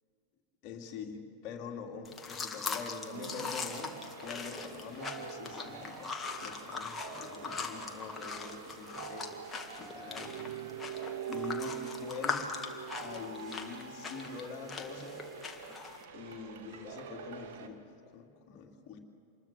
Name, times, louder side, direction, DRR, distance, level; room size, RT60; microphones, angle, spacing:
voice 1, 0.6-6.2 6.4-9.3 9.8-10.3 11.3-12.5 12.9-15.3 16.1-19.0, left 5 dB, 40° left, 2 dB, 2.6 m, -45 dB
sound 1, 2.0-16.0, left 4 dB, 15° left, 2.0 m, -41 dB
sound 2, 3.1-17.7, right 8 dB, 55° right, 1.8 m, -45 dB
26.5 x 21.5 x 6.9 m, 2.5 s
figure-of-eight pair, 90°, 0 cm